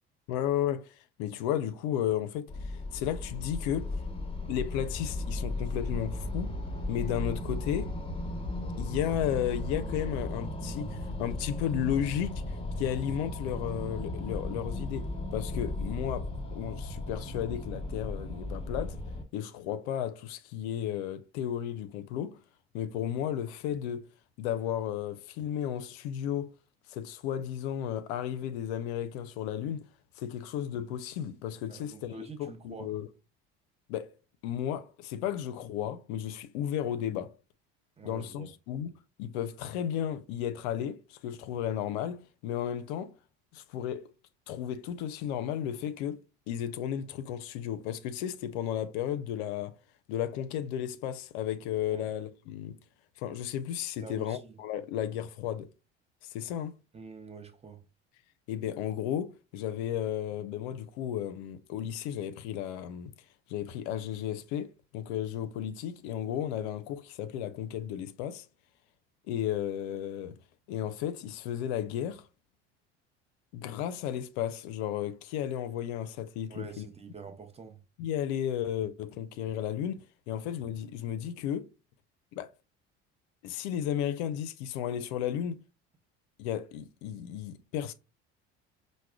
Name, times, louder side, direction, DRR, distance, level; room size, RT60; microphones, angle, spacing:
voice 1, 0.3-4.0 4.5-6.5 6.9-7.9 8.8-12.4 12.8-19.0 19.3-22.4 22.7-24.1 24.4-26.5 26.9-29.8 30.2-32.1 32.4-33.1 33.9-34.1 34.4-37.3 38.0-38.9 39.2-43.1 43.5-44.1 44.5-46.2 46.5-49.8 50.1-52.8 53.2-55.7 56.2-56.7 58.5-63.1 63.5-68.5 69.3-70.3 70.7-72.2 73.5-76.9 78.0-80.0 80.3-81.7 82.3-82.5 83.4-85.6 86.4-87.9, left 10 dB, 80° left, 0.5 m, -34 dB
sound 1, 2.5-19.2, left 2 dB, 15° left, 0.9 m, -36 dB
voice 2, 31.7-32.9 38.0-38.5 51.9-52.1 54.0-54.6 56.9-57.8 76.5-77.8, right 4 dB, 20° right, 0.7 m, -46 dB
4.7 x 2.1 x 2.2 m
hypercardioid pair, 75°, 32 cm